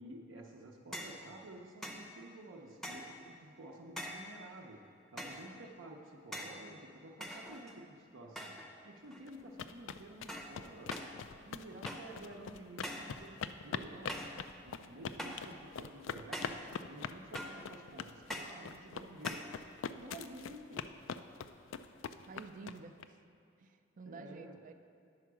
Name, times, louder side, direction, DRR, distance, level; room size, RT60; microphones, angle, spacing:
voice 1, 0.0-10.9 11.4-14.3 14.6-19.6 19.8-20.9 24.0-24.6, right 1 dB, 75° right, -1 dB, 0.7 m, -51 dB
sound 1, 0.9-1.2 1.8-2.1 2.8-3.2 4.0-4.3 5.2-5.5 6.3-6.6 7.2-7.9 8.4-8.7 9.1-9.5 10.3-10.6 10.9-11.2 11.9-12.2 12.8-13.2 14.1-14.4 15.2-15.5 16.3-16.7 17.3-17.7 18.3-18.6 19.2-19.5, equal, ahead, 0.6 m, -44 dB
sound 2, 9.3-23.0, left 7 dB, 80° left, 0.3 m, -43 dB
voice 2, 22.3-23.2 23.6-24.7, right 4 dB, 40° right, 8 dB, 0.4 m, -50 dB
10.5 x 4.6 x 6.1 m, 2.6 s
head